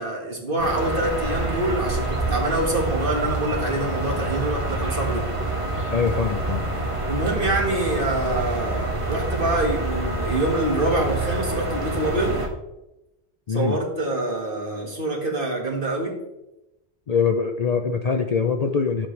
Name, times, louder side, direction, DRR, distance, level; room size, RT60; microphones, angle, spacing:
voice 1, 0.0-5.3 7.0-12.3 13.5-16.2, right 2 dB, 55° right, 0 dB, 1.8 m, -25 dB
sound 1, 0.6-12.5, right 2 dB, 30° right, 1.2 m, -27 dB
voice 2, 5.9-6.6 13.5-13.8 17.1-19.1, left 5 dB, 50° left, 5 dB, 0.5 m, -23 dB
11.0 x 7.4 x 3.2 m, 0.93 s
omnidirectional pair, 1.1 m